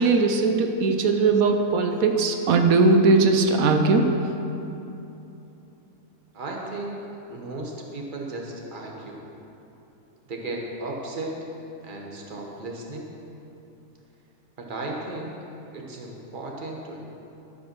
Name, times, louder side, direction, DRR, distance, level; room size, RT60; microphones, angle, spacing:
voice 1, 0.0-4.1, right 3 dB, 90° right, 5 dB, 1.1 m, -19 dB
voice 2, 6.3-9.2 10.3-11.4 11.8-13.1 14.6-15.3 15.7-17.0, right 2 dB, 40° right, -1 dB, 1.3 m, -35 dB
12.0 x 5.1 x 6.0 m, 2.9 s
omnidirectional pair, 1.4 m